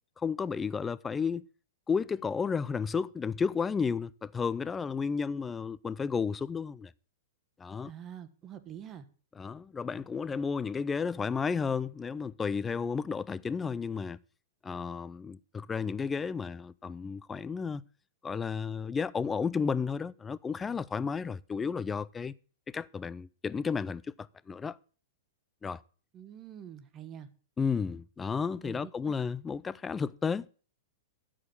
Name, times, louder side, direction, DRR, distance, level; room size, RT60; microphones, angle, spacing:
voice 1, 0.2-1.4 1.9-6.9 7.6-7.9 9.4-14.2 14.6-17.8 18.2-22.3 22.7-24.8 25.6-25.8 27.6-30.5, left 5 dB, 15° left, 0.4 m, -32 dB
voice 2, 7.8-9.1 26.1-27.3 28.6-29.1, right 9 dB, 30° right, 1.2 m, -46 dB
12.5 x 5.0 x 7.2 m
hypercardioid pair, 125°, 0 cm